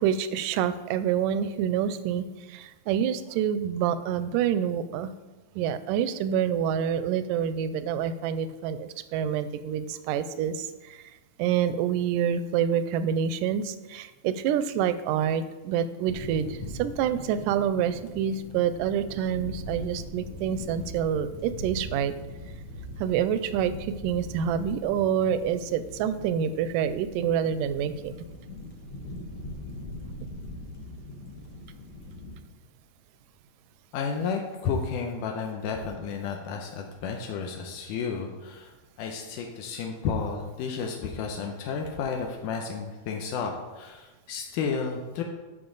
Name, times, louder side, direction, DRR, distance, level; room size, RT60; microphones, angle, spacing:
voice 1, 0.0-5.1 5.6-11.0 11.4-22.1 23.0-28.2, right 8 dB, 85° right, 12 dB, 2.1 m, -27 dB
sound 1, 16.1-32.4, left 1 dB, 60° left, 2.0 m, -41 dB
voice 2, 33.9-38.7 39.0-45.2, left 5 dB, 85° left, 2 dB, 2.3 m, -32 dB
10.5 x 6.2 x 3.9 m, 1.2 s
omnidirectional pair, 3.7 m